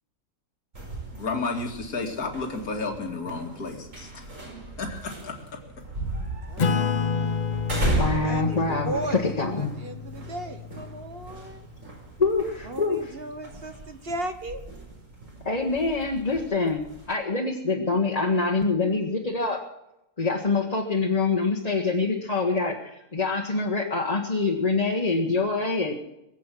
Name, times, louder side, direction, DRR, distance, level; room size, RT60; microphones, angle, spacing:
sound 1, 0.7-17.1, right 2 dB, 60° right, 5.0 m, -36 dB
voice 1, 1.2-4.4 4.8-5.6, left 3 dB, 80° left, 2 dB, 2.6 m, -32 dB
voice 2, 6.5-7.3 8.2-11.7 12.6-14.6, right 2 dB, 40° right, 8 dB, 1.4 m, -36 dB
Acoustic guitar / Strum, 6.6-11.6, left 5 dB, 45° left, 0.6 m, -29 dB
voice 3, 7.9-9.7 12.2-13.1 15.4-19.6 20.2-25.9, left 3 dB, 25° left, 0 dB, 1.6 m, -25 dB
21.5 x 8.3 x 7.6 m, 0.86 s
omnidirectional pair, 1.6 m